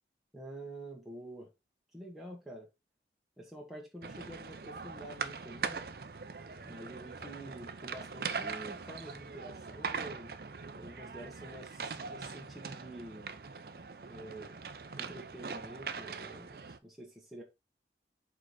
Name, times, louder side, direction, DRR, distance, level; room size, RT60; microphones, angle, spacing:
voice 1, 0.3-1.5 1.9-2.7 3.4-5.8 6.6-10.4 10.7-13.3 14.1-14.5 15.0-17.4, right 1 dB, ahead, 1.3 m, -48 dB
sound 1, 4.0-16.8, right 5 dB, 55° right, 0.6 m, -41 dB
5.0 x 4.8 x 4.0 m
head